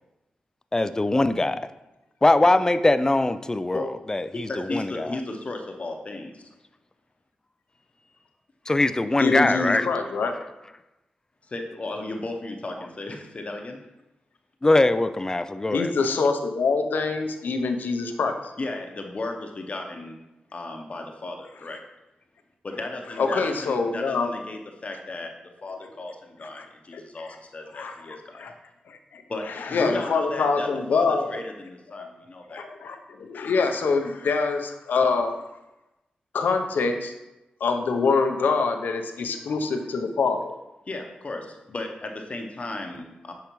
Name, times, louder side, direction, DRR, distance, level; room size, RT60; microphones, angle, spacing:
voice 1, 0.7-1.7 2.2-5.2 8.7-9.9 14.6-15.9, left 2 dB, 20° left, 12 dB, 0.3 m, -22 dB
voice 2, 4.5-6.5 8.0-8.1 11.5-13.8 18.6-20.2 20.5-21.8 22.6-25.3 25.6-28.4 29.3-32.6 40.9-43.3, left 2 dB, 45° left, 3 dB, 0.8 m, -35 dB
voice 3, 9.2-10.3 15.7-18.5 23.2-24.3 25.7-25.9 26.4-26.7 26.9-27.3 27.7-28.0 28.4-28.5 28.9-29.2 29.5-31.4 31.9-32.1 32.5-35.4 36.3-37.1 37.6-40.5, left 4 dB, 85° left, 5 dB, 0.6 m, -25 dB
6.6 x 4.7 x 3.0 m, 0.97 s
cardioid pair, 75°, 3 cm